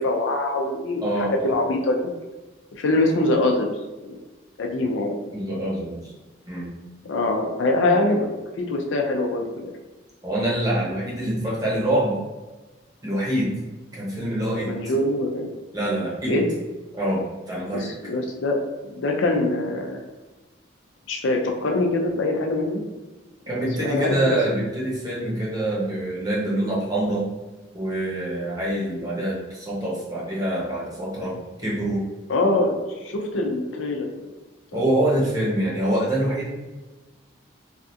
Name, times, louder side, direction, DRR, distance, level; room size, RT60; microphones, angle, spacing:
voice 1, 0.0-1.1 1.4-2.1 2.7-3.8 4.0-4.2 4.6-5.2 7.1-8.3 8.6-9.7 14.7-15.5 16.3-16.4 17.8-18.6 19.0-20.0 21.1-22.8 23.6-24.4 32.3-34.2 34.7-34.8 35.1-35.2, left 2 dB, 75° left, 2 dB, 0.4 m, -23 dB
voice 2, 1.0-1.5 5.3-6.1 6.5-6.7 10.2-12.1 13.0-13.5 13.9-14.7 15.7-16.3 16.9-17.9 23.5-27.2 27.7-32.0 34.7-36.5, right 1 dB, 20° right, -6 dB, 0.8 m, -25 dB
3.3 x 2.4 x 2.6 m, 1.2 s
head